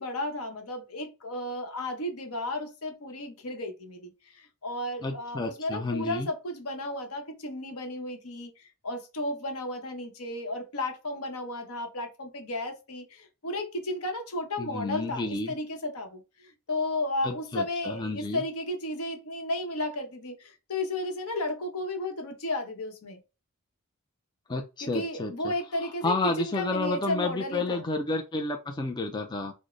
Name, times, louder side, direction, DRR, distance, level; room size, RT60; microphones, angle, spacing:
voice 1, 0.0-23.2 24.8-27.8, left 1 dB, 70° left, 0.8 m, -33 dB
voice 2, 5.0-6.3 14.6-15.5 17.2-18.4 24.5-25.5 26.0-29.5, left 2 dB, 20° left, 0.3 m, -31 dB
3.1 x 2.0 x 3.7 m
head